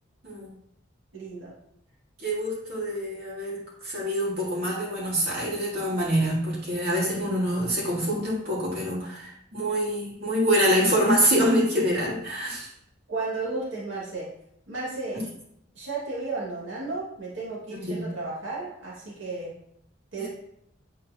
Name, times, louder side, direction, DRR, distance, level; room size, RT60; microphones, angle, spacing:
voice 1, 1.1-1.5 13.1-14.3 14.7-15.2 15.8-19.5 20.1-20.3, right 3 dB, 75° right, -6 dB, 2.2 m, -33 dB
voice 2, 2.2-12.7 15.1-15.2 17.7-18.1 20.2-20.3, equal, 50° right, -6 dB, 2.8 m, -25 dB
9.5 x 4.4 x 3.0 m, 0.73 s
head